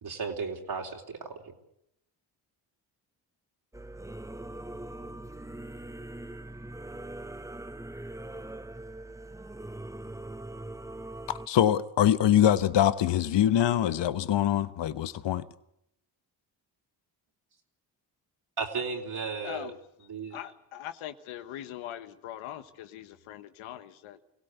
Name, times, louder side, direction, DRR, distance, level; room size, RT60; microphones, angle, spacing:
voice 1, 0.0-1.5 18.6-19.7 20.1-20.4, right 4 dB, 50° right, 3.9 m, -35 dB
Singing / Musical instrument, 3.7-11.5, right 1 dB, 5° right, 1.0 m, -41 dB
voice 2, 11.5-15.4, left 11 dB, 60° left, 1.1 m, -24 dB
voice 3, 19.4-19.8 20.3-24.2, left 12 dB, 80° left, 1.4 m, -41 dB
24.5 x 17.0 x 8.1 m
supercardioid pair, 60°, 48 cm